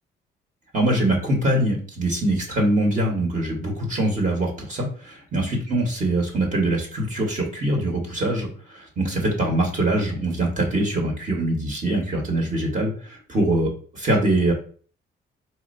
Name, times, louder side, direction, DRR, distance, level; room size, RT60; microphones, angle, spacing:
voice 1, 0.7-14.5, right 1 dB, 40° right, -1 dB, 1.4 m, -23 dB
4.3 x 2.7 x 2.6 m, 0.42 s
cardioid pair, 90°, 20 cm